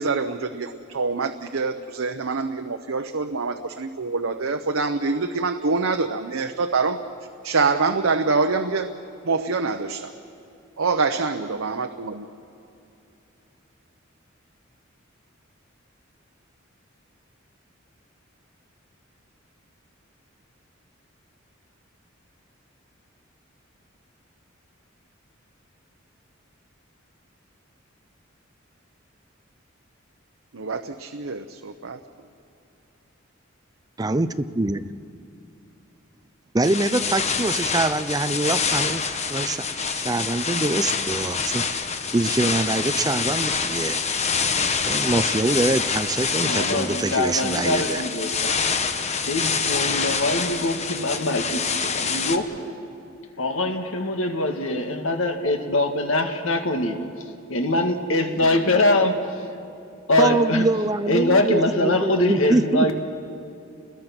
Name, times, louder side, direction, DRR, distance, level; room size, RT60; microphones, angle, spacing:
voice 1, 0.0-7.0 7.4-8.9 9.2-10.1 10.8-12.2 30.5-32.0, right 4 dB, 85° right, 5 dB, 0.8 m, -25 dB
voice 2, 34.6-34.9 36.5-41.6 42.1-44.0 44.8-48.0 60.2-63.0, right 2 dB, 20° right, 11 dB, 0.6 m, -24 dB
sound 1, 36.6-52.4, left 5 dB, 35° left, 1.1 m, -26 dB
voice 3, 46.4-48.6 49.3-52.5 53.4-57.0 57.5-59.2 60.1-60.7 61.1-63.0, left 2 dB, 80° left, 5 dB, 1.9 m, -23 dB
29.0 x 21.0 x 6.0 m, 2.6 s
head